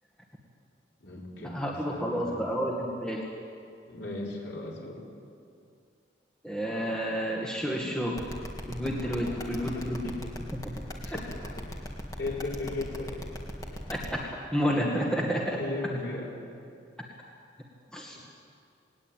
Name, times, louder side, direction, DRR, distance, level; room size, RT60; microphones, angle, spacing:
voice 1, 1.0-2.4 3.9-5.0 9.0-10.3 11.0-11.6 12.2-13.2 15.3-16.3, left 2 dB, 75° left, -4 dB, 5.1 m, -37 dB
voice 2, 1.5-3.3 6.4-8.2 8.7-10.1 13.9-14.2 14.5-15.6 17.9-18.2, equal, 5° left, -2 dB, 1.9 m, -30 dB
sound 1, 8.2-14.0, equal, 20° left, 2.3 m, -38 dB
20.0 x 19.0 x 9.2 m, 2.4 s
head